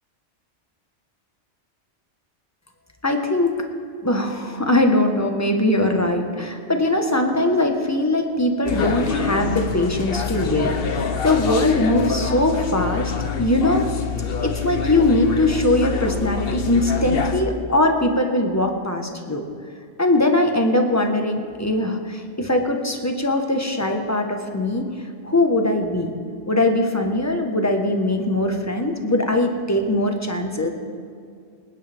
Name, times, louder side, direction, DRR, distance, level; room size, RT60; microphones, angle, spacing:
voice 1, 3.0-3.5 4.0-13.1 13.4-13.9 14.2-19.4 20.0-24.9 25.2-26.1 26.5-30.7, left 1 dB, 15° left, 3 dB, 1.3 m, -21 dB
sound 1, 8.7-17.4, left 6 dB, 55° left, 1.1 m, -26 dB
26.0 x 9.7 x 3.6 m, 2.3 s
omnidirectional pair, 1.2 m